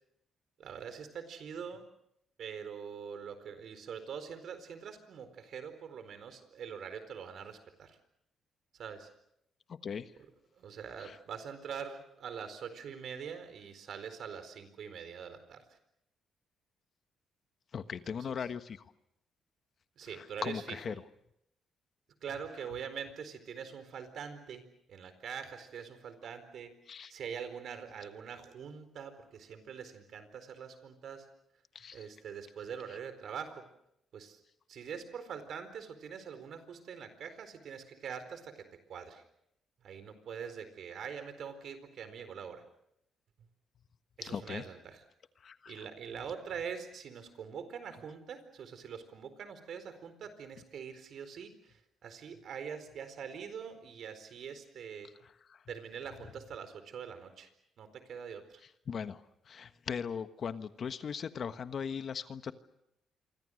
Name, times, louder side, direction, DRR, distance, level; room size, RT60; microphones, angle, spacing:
voice 1, 0.6-1.9 2.4-8.0 8.7-9.1 10.5-15.8 18.1-18.2 20.0-20.8 22.2-26.7 27.1-31.3 31.9-33.6 34.1-34.4 34.7-39.2 39.8-42.6 44.2-45.0 45.7-55.1 55.7-57.5 57.8-58.6, right 7 dB, 65° right, 10 dB, 4.3 m, -44 dB
voice 2, 9.7-10.1 11.0-11.2 17.7-18.9 20.1-20.9 26.9-27.1 31.7-32.1 44.2-44.6 45.4-45.8 55.2-55.6 58.9-62.5, left 7 dB, 50° left, 11 dB, 1.3 m, -39 dB
27.5 x 24.5 x 6.5 m, 0.78 s
cardioid pair, 90°, 0 cm